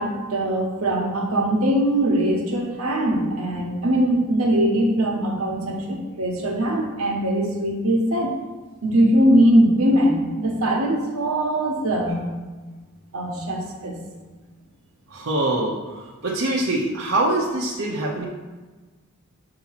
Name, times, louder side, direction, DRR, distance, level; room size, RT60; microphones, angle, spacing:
voice 1, 0.0-8.3 8.8-12.3 13.1-14.0, right 1 dB, 85° right, 0 dB, 1.2 m, -21 dB
voice 2, 15.1-18.3, right 2 dB, 65° right, -4 dB, 0.8 m, -24 dB
6.8 x 2.9 x 5.7 m, 1.3 s
head